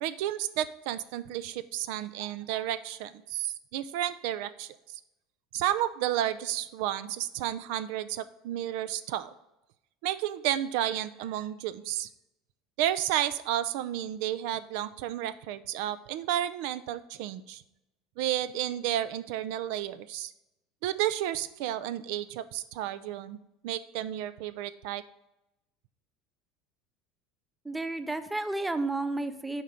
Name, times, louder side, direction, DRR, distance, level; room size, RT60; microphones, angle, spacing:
voice 1, 0.0-5.0 5.5-9.3 10.0-12.1 12.8-17.6 18.2-20.3 20.8-23.4 23.6-25.0, right 12 dB, 70° right, 14 dB, 0.4 m, -32 dB
voice 2, 27.6-29.6, right 2 dB, 5° right, 11 dB, 0.4 m, -31 dB
7.3 x 4.4 x 5.1 m, 0.89 s
cardioid pair, 150°, 0 cm